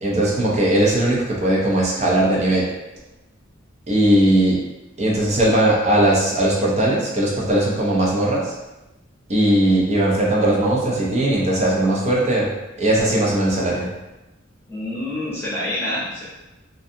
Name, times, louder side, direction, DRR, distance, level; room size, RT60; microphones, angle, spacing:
voice 1, 0.0-2.7 3.9-4.6 5.0-8.5 9.3-12.5 12.8-13.9, right 1 dB, 35° right, -4 dB, 0.6 m, -19 dB
voice 2, 14.7-16.2, left 1 dB, 10° left, -10 dB, 0.9 m, -27 dB
2.5 x 2.3 x 2.6 m, 1.0 s
head